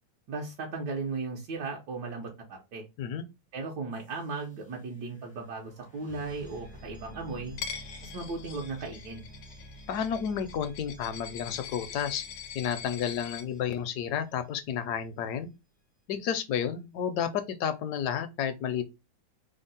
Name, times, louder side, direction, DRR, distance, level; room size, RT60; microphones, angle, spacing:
voice 1, 0.3-2.8 3.5-7.6 8.0-9.2, right 3 dB, 75° right, 1.3 m, -36 dB
sound 1, 3.9-14.7, equal, 10° left, 0.4 m, -51 dB
Coin (dropping), 7.6-13.4, left 8 dB, 90° left, 1.3 m, -43 dB
voice 2, 9.9-12.2 12.5-15.5 16.1-18.8, left 8 dB, 75° left, 1.0 m, -31 dB
3.5 x 2.0 x 3.9 m
omnidirectional pair, 1.9 m